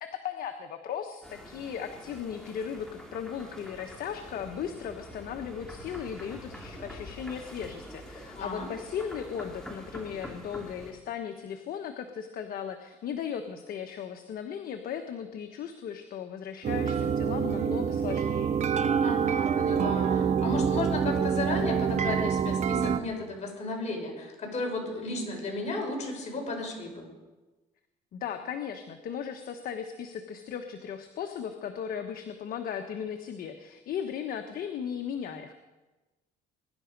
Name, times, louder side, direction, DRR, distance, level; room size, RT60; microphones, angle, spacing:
voice 1, 0.0-18.6 28.1-35.5, left 8 dB, 60° left, 6 dB, 1.2 m, -37 dB
sound 1, 1.2-10.9, equal, 5° left, 3.2 m, -46 dB
voice 2, 8.4-8.7 19.0-27.1, left 2 dB, 40° left, 0 dB, 5.5 m, -34 dB
sound 2, 16.6-23.0, right 7 dB, 45° right, 1.0 m, -26 dB
22.0 x 11.5 x 5.3 m, 1.2 s
cardioid pair, 110°, 17 cm